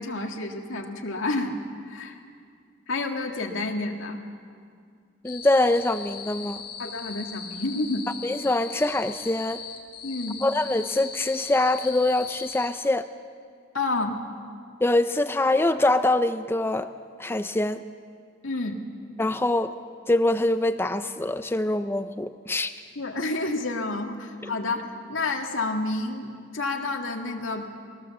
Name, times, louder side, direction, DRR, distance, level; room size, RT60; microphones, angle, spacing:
voice 1, 0.0-1.5 1.9-2.2 2.9-4.2 6.8-8.1 10.0-10.4 13.7-14.2 18.4-18.8 23.0-27.7, left 2 dB, 90° left, 2 dB, 2.1 m, -29 dB
sound 1, 5.2-12.7, left 6 dB, 50° left, 3.4 m, -39 dB
voice 2, 5.2-6.6 8.2-9.6 10.4-13.1 14.8-16.9 17.2-17.8 19.2-19.7 20.1-22.7, left 2 dB, 10° left, 11 dB, 0.4 m, -24 dB
22.0 x 18.0 x 7.3 m, 2.2 s
head